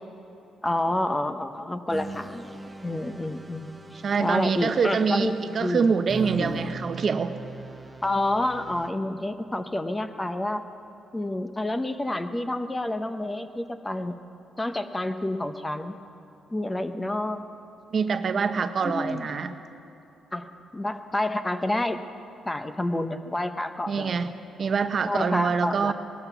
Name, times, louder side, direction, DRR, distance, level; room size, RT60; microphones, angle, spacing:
voice 1, 0.6-2.5 2.8-5.9 6.2-6.6 8.0-10.6 11.1-14.2 14.6-16.0 16.5-17.5 18.8-19.3 20.3-22.0 22.5-24.1 25.1-25.9, left 1 dB, 15° left, 9 dB, 0.8 m, -29 dB
sound 1, 1.9-8.9, right 3 dB, 15° right, 1.1 m, -41 dB
voice 2, 4.0-7.3 17.9-19.5 23.9-24.3 24.6-25.9, right 5 dB, 50° right, 9 dB, 0.8 m, -25 dB
18.5 x 12.5 x 6.0 m, 2.9 s
cardioid pair, 90°, 0 cm